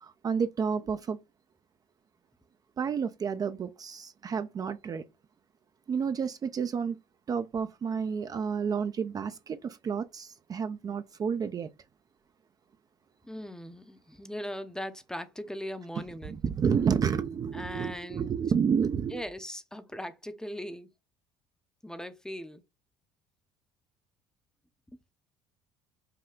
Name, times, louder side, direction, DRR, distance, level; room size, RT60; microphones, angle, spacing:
voice 1, 0.0-1.2 2.8-5.0 5.9-7.0 7.3-11.7 16.2-19.2, right 6 dB, 35° right, 0.5 m, -30 dB
voice 2, 13.2-16.4 17.5-18.4 19.1-20.9 21.8-22.6, equal, 5° left, 0.6 m, -39 dB
5.6 x 2.2 x 3.7 m
supercardioid pair, 90°, 11 cm